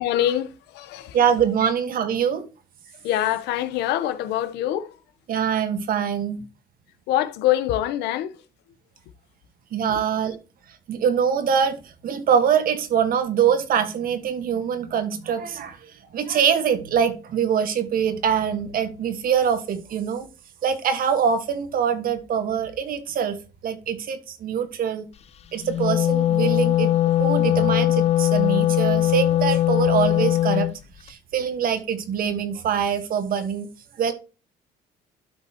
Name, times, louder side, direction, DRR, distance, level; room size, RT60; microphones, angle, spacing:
voice 1, 0.0-1.2 1.6-1.7 3.0-5.0 7.1-8.4 9.9-10.0, left 12 dB, 85° left, 1.0 m, -25 dB
voice 2, 1.1-2.4 5.3-6.4 9.7-10.4 10.9-20.3 20.6-25.1 25.5-26.9 27.2-30.7 31.0-33.7 34.0-34.1, right 8 dB, 60° right, 1.5 m, -24 dB
Wind instrument woodwind instrument, 25.6-30.7, left 13 dB, 40° left, 0.4 m, -20 dB
12.0 x 5.5 x 2.9 m
cardioid pair, 110°, 17 cm